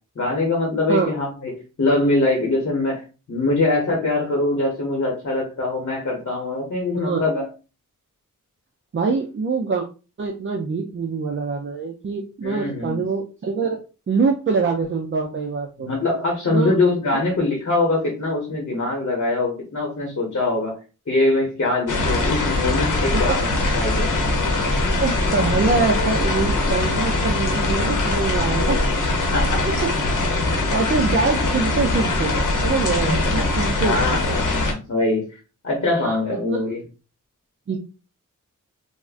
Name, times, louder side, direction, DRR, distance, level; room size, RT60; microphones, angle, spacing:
voice 1, 0.2-1.5 1.8-7.5 12.4-13.0 15.8-20.8 21.1-24.1 29.3-29.6 33.8-35.3 35.6-36.8, left 2 dB, 50° left, -1 dB, 0.9 m, -23 dB
voice 2, 8.9-9.9 10.2-15.9 16.5-16.7 23.1-23.4 25.0-28.8 29.7-29.8 30.6-34.4 36.0-36.2 36.4-36.6 37.7-37.8, right 4 dB, 40° right, 1 dB, 0.4 m, -24 dB
sound 1, 21.9-34.7, left 2 dB, 75° left, 0.8 m, -22 dB
3.5 x 2.1 x 2.4 m, 0.32 s
wide cardioid pair, 125°, 32 cm